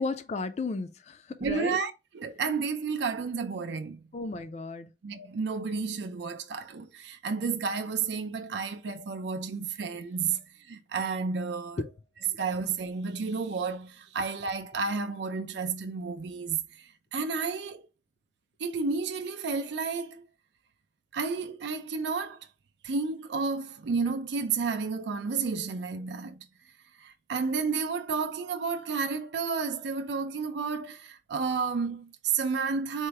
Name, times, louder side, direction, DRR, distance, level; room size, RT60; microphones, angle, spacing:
voice 1, 0.0-1.8 4.1-4.9 11.8-11.9, left 3 dB, 40° left, 0.4 m, -34 dB
voice 2, 1.4-4.0 5.0-11.8 12.4-17.8 18.6-20.2 21.1-22.4 22.8-26.4 27.0-33.1, right 5 dB, 75° right, 0.4 m, -31 dB
4.4 x 2.0 x 4.5 m
head